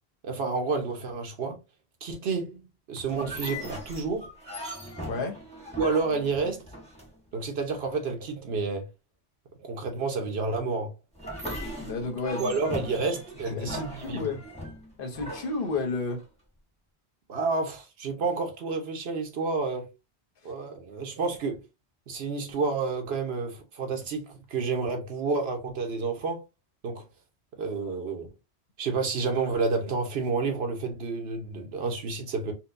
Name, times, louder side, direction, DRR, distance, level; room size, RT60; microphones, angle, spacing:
voice 1, 0.2-1.6 2.0-4.3 5.8-6.6 7.3-8.9 9.6-10.9 12.4-14.3 17.3-19.9 20.4-21.6 22.1-26.4 26.8-27.0 27.6-28.3 28.8-32.5, right 4 dB, 70° right, 1.1 m, -30 dB
sound 1, 3.1-7.4 11.1-16.2, equal, 5° left, 1.0 m, -39 dB
voice 2, 5.1-5.4 11.8-12.5 13.5-14.4 15.0-16.2 20.4-20.5, left 3 dB, 55° left, 1.0 m, -31 dB
4.4 x 2.2 x 2.5 m
omnidirectional pair, 1.1 m